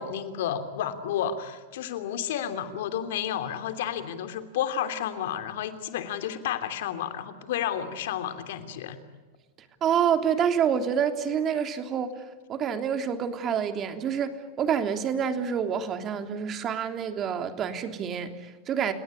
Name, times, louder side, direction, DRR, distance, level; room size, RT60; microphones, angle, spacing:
voice 1, 0.0-9.0, left 9 dB, 75° left, 9 dB, 3.0 m, -31 dB
voice 2, 9.8-12.2 12.5-18.9, right 8 dB, 35° right, 7 dB, 3.3 m, -27 dB
30.0 x 18.0 x 10.0 m, 1.3 s
hypercardioid pair, 115°, 0 cm